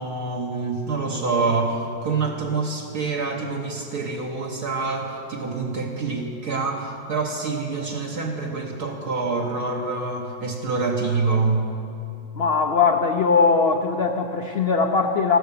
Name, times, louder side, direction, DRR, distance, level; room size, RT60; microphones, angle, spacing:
voice 1, 0.0-11.6, right 4 dB, 60° right, 0 dB, 1.6 m, -26 dB
voice 2, 12.3-15.4, left 5 dB, 60° left, 3 dB, 0.6 m, -20 dB
14.0 x 12.5 x 6.8 m, 2.6 s
omnidirectional pair, 2.0 m